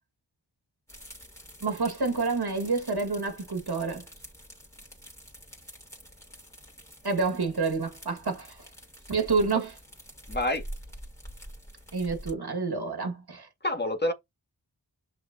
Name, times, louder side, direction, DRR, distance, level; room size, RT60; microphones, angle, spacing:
sound 1, 0.9-12.3, equal, 5° left, 3.0 m, -47 dB
voice 1, 1.6-4.0 7.0-8.6 9.1-9.8 11.9-13.5, right 4 dB, 60° right, 2.0 m, -28 dB
voice 2, 10.3-10.6 13.6-14.1, left 1 dB, 25° left, 1.9 m, -27 dB
6.7 x 5.9 x 2.8 m
wide cardioid pair, 45°, 44 cm